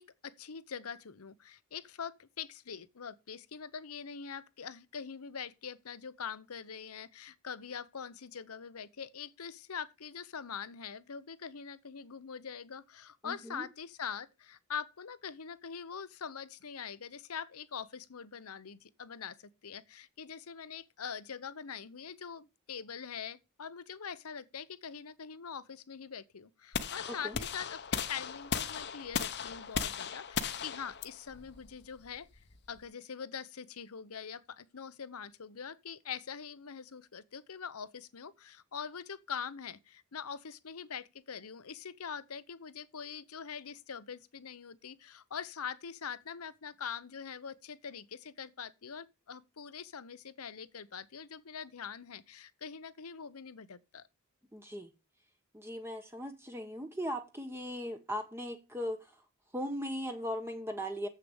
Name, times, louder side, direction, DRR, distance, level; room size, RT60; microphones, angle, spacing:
voice 1, 0.0-32.3 32.7-54.0, left 7 dB, 80° left, 0.8 m, -43 dB
voice 2, 13.2-13.6 27.2-27.4 54.5-54.9 55.5-59.0 59.5-61.1, equal, 10° right, 1.0 m, -38 dB
sound 1, 26.7-32.8, left 6 dB, 50° left, 0.9 m, -37 dB
7.7 x 6.7 x 7.0 m
head